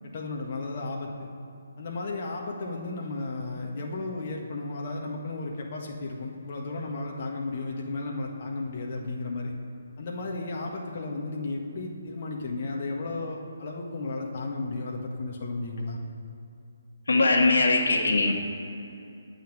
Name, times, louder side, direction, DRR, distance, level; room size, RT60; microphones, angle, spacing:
voice 1, 0.0-1.1 1.8-9.5 10.0-16.0, left 3 dB, 45° left, -1 dB, 1.6 m, -34 dB
voice 2, 17.1-18.3, left 3 dB, 70° left, 2 dB, 1.8 m, -21 dB
9.3 x 7.4 x 8.8 m, 2.6 s
figure-of-eight pair, 140°, 0 cm